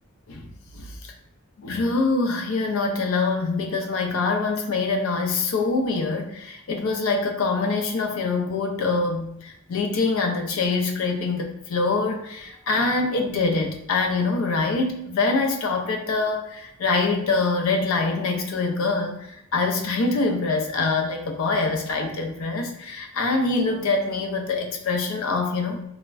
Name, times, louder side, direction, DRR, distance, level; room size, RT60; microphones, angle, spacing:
voice 1, 0.7-1.1 1.6-25.8, left 3 dB, 80° left, 3 dB, 0.4 m, -24 dB
3.4 x 2.1 x 2.3 m, 0.75 s
head